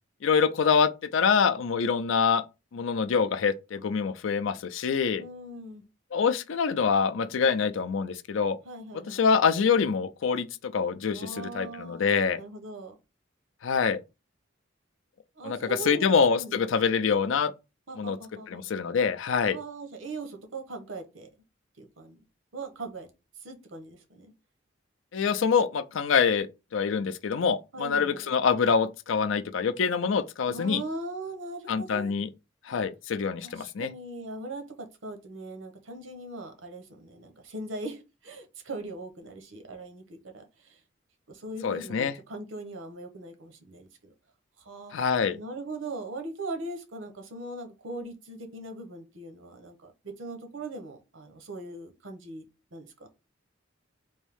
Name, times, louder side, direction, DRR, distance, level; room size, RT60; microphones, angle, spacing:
voice 1, 0.2-2.4 2.7-5.2 6.1-8.6 9.1-12.4 13.6-14.0 15.4-17.5 18.0-18.2 18.5-19.6 25.1-26.5 26.7-30.8 31.7-32.3 32.6-33.9 41.6-42.1 44.9-45.4, left 6 dB, 80° left, 0.4 m, -25 dB
voice 2, 5.2-5.8 8.6-9.3 11.1-12.1 12.3-12.9 15.4-16.6 17.9-18.6 19.5-21.3 21.8-22.2 22.5-23.1 23.4-24.3 27.7-28.3 30.4-32.1 33.4-34.8 35.0-40.8 41.3-44.1 44.6-45.0 45.3-52.4 52.7-52.9, right 2 dB, 80° right, 0.9 m, -40 dB
3.5 x 2.7 x 3.5 m
head